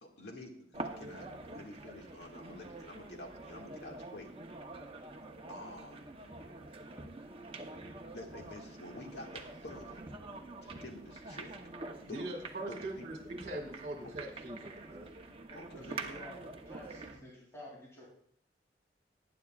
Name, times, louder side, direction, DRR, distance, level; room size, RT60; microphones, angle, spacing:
voice 1, 0.0-4.3 5.5-6.1 8.1-10.0 10.6-11.6 12.0-12.3 12.7-12.8 14.0-14.1 15.5-15.9, left 1 dB, 70° left, 1 dB, 2.0 m, -49 dB
sound 1, 0.7-17.2, right 3 dB, 30° right, 0.8 m, -46 dB
sound 2, 6.0-7.5 7.7-8.6 9.6-11.5 11.9-14.1, equal, 15° right, 1.2 m, -56 dB
voice 2, 12.1-15.1, right 1 dB, 50° right, 0 dB, 2.0 m, -41 dB
voice 3, 15.7-18.1, equal, 15° left, -5 dB, 2.8 m, -50 dB
19.0 x 9.7 x 2.4 m, 0.65 s
head